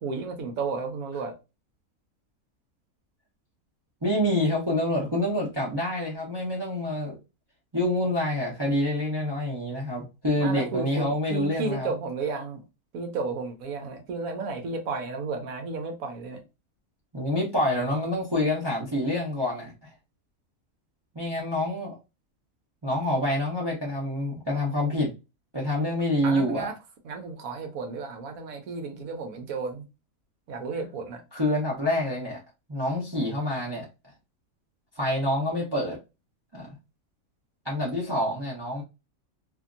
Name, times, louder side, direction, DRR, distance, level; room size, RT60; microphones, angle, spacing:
voice 1, 0.0-1.4 10.4-12.6 12.9-16.4 26.2-26.7 27.0-29.8 30.5-31.2, right 4 dB, 75° right, 1.2 m, -33 dB
voice 2, 4.0-7.2 7.7-11.9 17.1-19.7 21.1-22.0 22.8-25.1 25.5-26.7 31.3-32.4 32.7-33.9 35.0-36.0 36.5-36.7 37.6-38.8, left 1 dB, 20° right, 0.7 m, -27 dB
2.8 x 2.7 x 2.4 m
omnidirectional pair, 1.5 m